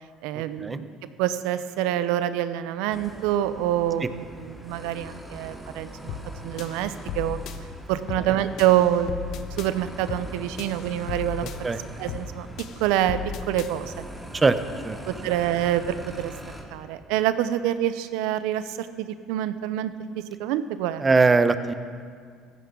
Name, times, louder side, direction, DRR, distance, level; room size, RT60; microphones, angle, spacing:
voice 1, 0.2-0.9 1.2-6.2 6.4-7.4 7.9-11.5 12.0-12.5 12.8-13.2 13.5-14.0 15.1-16.3 16.7-21.0, right 12 dB, 80° right, 13 dB, 0.6 m, -26 dB
sound 1, 2.9-16.6, equal, 5° right, 2.3 m, -42 dB
sound 2, 6.1-6.3 6.6-7.6 8.1-8.3 8.6-9.7 10.1-10.3 10.6-11.6 12.1-12.3 12.6-13.7, left 9 dB, 65° left, 0.9 m, -35 dB
voice 2, 11.4-11.8 14.3-14.6 14.8-15.0 15.2-15.3 21.0-21.7, right 4 dB, 25° right, 11 dB, 0.8 m, -21 dB
15.5 x 15.0 x 3.8 m, 2.1 s
supercardioid pair, 85°, 0 cm